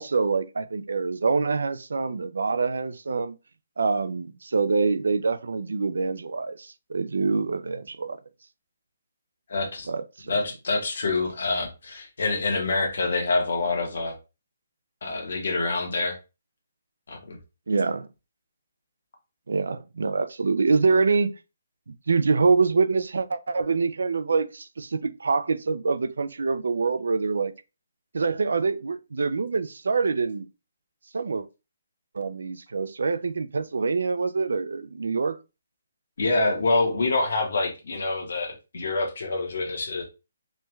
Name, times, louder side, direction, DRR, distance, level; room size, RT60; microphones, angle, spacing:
voice 1, 0.0-3.3 3.8-8.2 9.9-10.3 17.7-18.1 19.5-21.3 22.1-27.5 28.1-30.5 31.1-31.5 32.1-35.4, right 4 dB, 90° right, 0.3 m, -25 dB
voice 2, 9.5-9.9 10.3-14.1 15.0-16.1 17.1-17.4 36.2-40.0, left 3 dB, 55° left, 0.9 m, -26 dB
3.2 x 2.2 x 3.1 m
hypercardioid pair, 175°, 0 cm